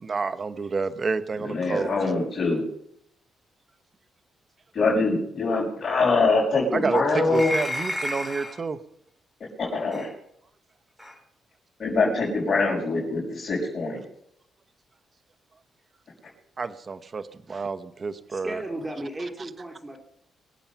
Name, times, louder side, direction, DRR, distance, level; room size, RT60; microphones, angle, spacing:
voice 1, 0.0-1.9 6.7-8.8 16.6-18.6, right 4 dB, 40° right, 11 dB, 1.0 m, -29 dB
voice 2, 1.4-2.6 4.7-7.5 9.6-10.1 11.8-14.0, left 3 dB, 45° left, -5 dB, 6.1 m, -24 dB
sound 1, 7.3-8.6 9.9-10.1 11.0-11.1, left 1 dB, ahead, 4.7 m, -31 dB
voice 3, 18.3-20.0, right 1 dB, 20° right, 2 dB, 2.9 m, -34 dB
24.0 x 8.6 x 5.8 m, 0.73 s
cardioid pair, 85°, 0 cm